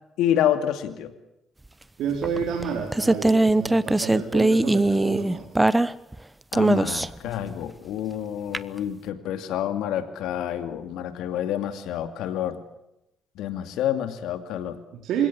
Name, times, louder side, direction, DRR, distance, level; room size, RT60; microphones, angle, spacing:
voice 1, 0.2-1.1 6.5-12.6 13.4-14.8, left 10 dB, 90° left, 10 dB, 2.5 m, -28 dB
voice 2, 2.0-5.5 14.9-15.3, right 7 dB, 80° right, 3 dB, 3.6 m, -29 dB
sound 1, 2.2-6.2 6.5-7.3 8.5-8.6, right 2 dB, 10° right, 1.0 m, -21 dB
28.0 x 17.0 x 8.6 m, 0.86 s
cardioid pair, 90°, 0 cm